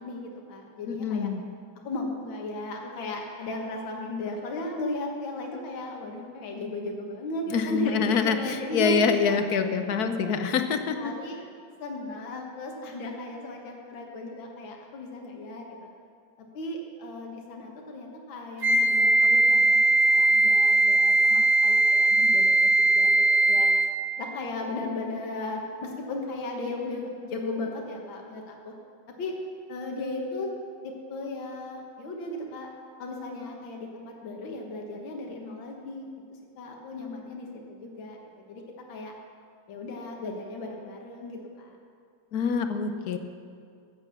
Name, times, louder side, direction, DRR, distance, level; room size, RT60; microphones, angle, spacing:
voice 1, 0.0-1.3 1.8-9.3 9.9-11.4 11.8-15.8 16.4-23.7 24.2-28.7 29.2-29.4 29.7-30.5 30.8-32.7 33.0-36.1 36.6-38.6 38.9-39.1 39.7-41.8, left 1 dB, 75° left, 1 dB, 2.1 m, -36 dB
voice 2, 0.9-1.4 7.5-11.1 42.3-43.2, left 6 dB, 60° left, 8 dB, 1.1 m, -26 dB
Wind instrument woodwind instrument, 18.6-24.0, right 2 dB, 40° right, 1.0 m, -20 dB
14.0 x 9.1 x 7.0 m, 2.3 s
omnidirectional pair, 2.1 m